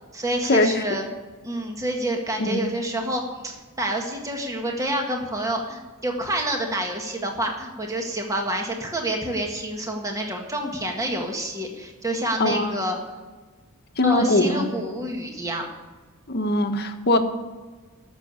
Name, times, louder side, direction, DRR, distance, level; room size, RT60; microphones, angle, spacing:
voice 1, 0.1-1.1 1.4-13.0 14.0-15.7, right 1 dB, 15° right, 1 dB, 1.7 m, -28 dB
voice 2, 12.4-12.8 14.0-14.7 16.3-17.2, left 2 dB, 45° left, 5 dB, 1.3 m, -21 dB
14.0 x 6.9 x 9.7 m, 1.3 s
head